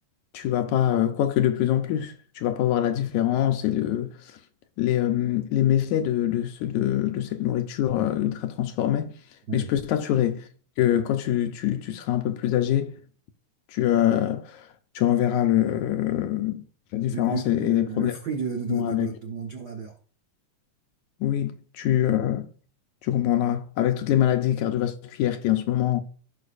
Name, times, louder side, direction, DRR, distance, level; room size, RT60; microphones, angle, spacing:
voice 1, 0.3-4.1 4.8-9.1 9.5-10.4 10.8-13.0 13.7-14.7 15.0-16.6 16.9-18.1 18.7-19.1 21.2-22.5 23.0-26.0, left 11 dB, 75° left, 2.0 m, -24 dB
voice 2, 17.1-20.0, right 5 dB, 75° right, 0.9 m, -33 dB
16.5 x 5.6 x 2.5 m
omnidirectional pair, 3.7 m